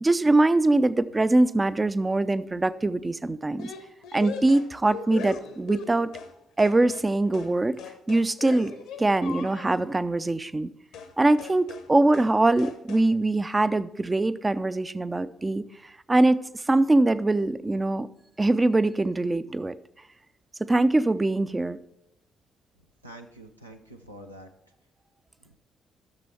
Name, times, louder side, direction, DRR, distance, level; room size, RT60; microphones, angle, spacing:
voice 1, 0.0-3.7 4.1-6.1 6.6-7.8 8.1-8.7 9.0-10.7 11.2-15.6 16.1-18.1 18.4-19.7 20.6-21.8, right 2 dB, 20° right, 15 dB, 0.5 m, -23 dB
sound 1, 3.6-6.3 6.6-7.1 7.3-7.5 7.8-9.9 10.9-11.1 11.4-11.9 12.1-12.3 12.6-13.1, left 6 dB, 65° left, 1.0 m, -39 dB
voice 2, 23.0-24.5 25.4-25.6, right 1 dB, 90° right, 2 dB, 0.6 m, -46 dB
13.5 x 6.8 x 4.2 m, 0.87 s
figure-of-eight pair, 40°, 0 cm